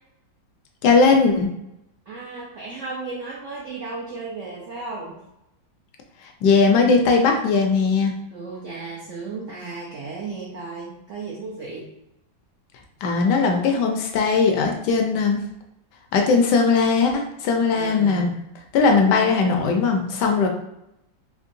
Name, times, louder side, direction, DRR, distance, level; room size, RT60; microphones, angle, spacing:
voice 1, 0.8-1.5 6.4-8.1 13.0-15.4 16.1-18.3 18.7-20.5, left 4 dB, 70° left, 3 dB, 1.1 m, -19 dB
voice 2, 2.1-5.2 8.3-11.9 17.7-18.3, right 3 dB, 70° right, -5 dB, 0.7 m, -34 dB
3.7 x 3.0 x 2.6 m, 0.85 s
omnidirectional pair, 2.1 m